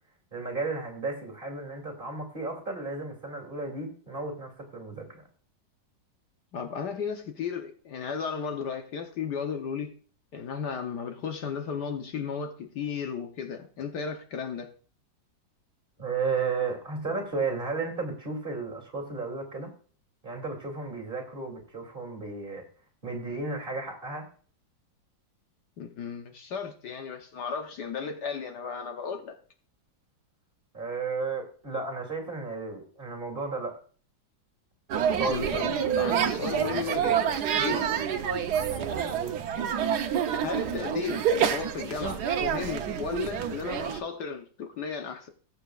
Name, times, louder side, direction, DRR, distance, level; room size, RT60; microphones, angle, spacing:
voice 1, 0.3-5.2 16.0-19.7 20.2-22.6 23.0-24.3 30.7-33.8 35.1-35.7 39.1-39.3, right 4 dB, 30° right, 3.1 m, -33 dB
voice 2, 6.5-10.0 10.3-14.7 25.8-29.3 35.3-38.0 40.4-45.3, left 6 dB, 65° left, 1.5 m, -34 dB
sound 1, 34.9-44.0, right 8 dB, 65° right, 1.3 m, -28 dB
19.0 x 8.0 x 2.4 m
omnidirectional pair, 2.0 m